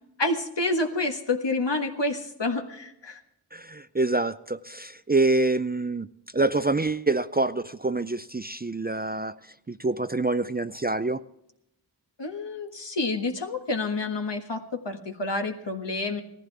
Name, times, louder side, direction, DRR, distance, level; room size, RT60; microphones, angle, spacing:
voice 1, 0.2-3.2 12.2-16.2, left 2 dB, 75° left, 4 dB, 1.6 m, -28 dB
voice 2, 3.5-6.1 6.3-9.4 9.7-11.2, right 2 dB, 25° right, 12 dB, 0.4 m, -26 dB
18.5 x 14.5 x 3.4 m, 0.81 s
wide cardioid pair, 55°, 43 cm